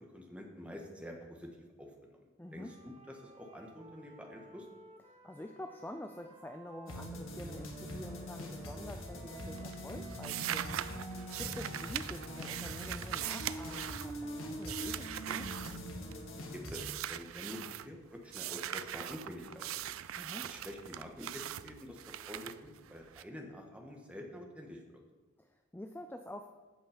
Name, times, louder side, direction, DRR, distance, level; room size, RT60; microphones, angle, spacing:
voice 1, 0.0-1.5 1.8-2.1 2.5-4.7 16.5-20.0 20.4-22.0 22.2-25.0, left 1 dB, 5° right, 1 dB, 1.5 m, -47 dB
voice 2, 2.4-2.7 5.1-15.5 20.2-20.5 25.4-26.5, left 1 dB, 10° left, 6 dB, 0.5 m, -47 dB
sound 1, 2.5-7.1 7.7-12.5, right 3 dB, 30° right, 1.1 m, -56 dB
sound 2, 6.9-16.8, equal, 75° left, 1.8 m, -43 dB
using sound, 8.9-9.3 9.6-16.3 16.7-17.9 18.3-23.2, right 11 dB, 80° right, 0.4 m, -41 dB
15.0 x 5.7 x 5.2 m, 1.2 s
head